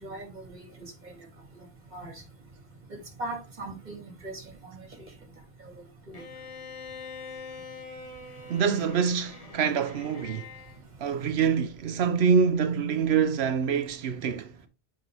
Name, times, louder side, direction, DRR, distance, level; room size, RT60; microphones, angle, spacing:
voice 1, 0.0-0.7 1.0-1.1 1.9-2.1 3.2-4.8 5.6-5.7 6.1-6.2, right 2 dB, 45° right, 2.2 m, -39 dB
Bowed string instrument, 6.1-10.8, left 4 dB, 35° left, 1.3 m, -44 dB
voice 2, 8.5-10.5 11.0-14.5, right 6 dB, 80° right, 0.9 m, -25 dB
8.4 x 5.0 x 3.4 m
omnidirectional pair, 1.1 m